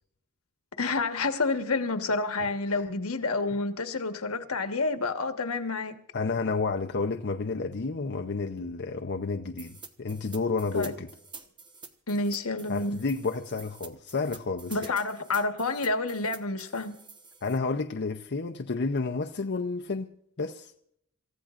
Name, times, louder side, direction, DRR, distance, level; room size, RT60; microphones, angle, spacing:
voice 1, 0.8-6.0 10.7-10.9 12.1-13.0 14.7-16.9, left 3 dB, 80° left, 1.3 m, -29 dB
voice 2, 6.1-11.1 12.7-14.9 17.4-20.7, left 4 dB, 50° left, 0.7 m, -31 dB
sound 1, 9.6-17.6, right 4 dB, 20° right, 1.0 m, -48 dB
27.5 x 15.0 x 2.5 m
head